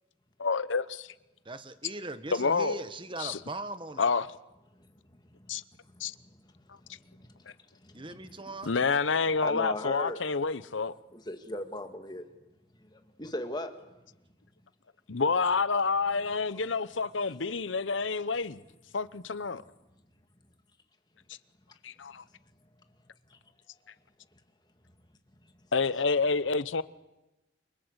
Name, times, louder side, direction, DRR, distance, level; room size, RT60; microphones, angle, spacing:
voice 1, 0.4-1.1 2.3-2.8 3.2-3.4 4.0-4.3 5.5-5.6 6.0-6.1 8.6-10.9 15.1-18.6 18.9-19.6 21.8-22.2 25.7-26.8, left 4 dB, 85° left, 0.9 m, -28 dB
voice 2, 1.4-4.1 7.9-8.7, right 2 dB, 25° right, 1.4 m, -39 dB
voice 3, 4.7-8.4 9.4-10.4 11.1-12.3 12.7-13.8 16.5-16.6 17.1-17.3 23.3-23.4 23.7-23.8 25.4-25.5, left 1 dB, 20° left, 2.2 m, -41 dB
29.5 x 24.0 x 8.2 m
head